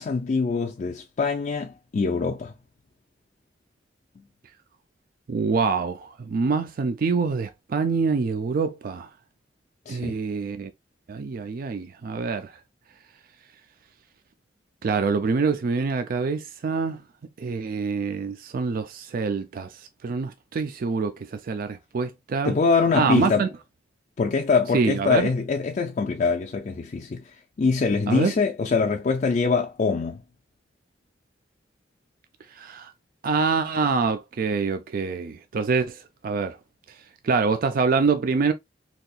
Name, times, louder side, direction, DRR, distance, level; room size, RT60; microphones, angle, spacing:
voice 1, 0.0-2.5 4.2-4.3 9.9-10.2 22.4-23.5 24.2-30.2, left 4 dB, 45° left, 0.4 m, -24 dB
voice 2, 5.3-9.1 9.9-10.7 11.1-12.5 14.8-17.0 17.4-19.7 20.0-22.5 22.9-23.5 24.7-25.3 28.1-28.3 32.6-32.9 33.2-36.6 37.2-38.5, right 4 dB, 55° right, 0.4 m, -25 dB
4.1 x 2.8 x 2.3 m
head